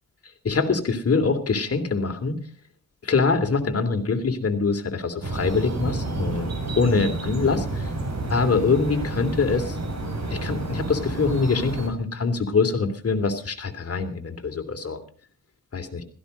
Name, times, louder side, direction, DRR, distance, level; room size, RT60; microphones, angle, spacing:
voice 1, 0.4-2.3 3.0-7.9 8.3-9.8 10.3-15.0 15.7-16.0, left 4 dB, 45° left, 7 dB, 3.0 m, -24 dB
sound 1, 5.2-11.9, right 2 dB, 50° right, 6.9 m, -30 dB
16.5 x 14.0 x 5.4 m, 0.42 s
cardioid pair, 95°, 33 cm